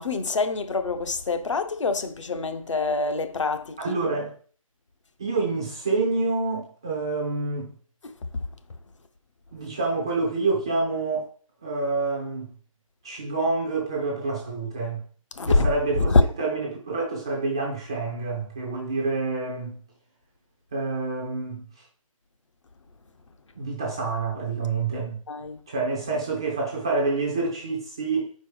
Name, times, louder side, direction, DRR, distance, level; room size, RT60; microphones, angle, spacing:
voice 1, 0.0-4.0 15.3-15.7 16.0-16.2 25.3-25.6, left 3 dB, 60° left, 0.9 m, -24 dB
voice 2, 3.8-4.3 5.2-7.7 9.5-11.3 11.6-12.5 13.0-15.0 15.5-19.8 20.7-21.6 23.6-25.2 25.7-28.3, right 3 dB, 10° right, 0.4 m, -27 dB
4.7 x 4.6 x 4.7 m
hypercardioid pair, 165°, 18 cm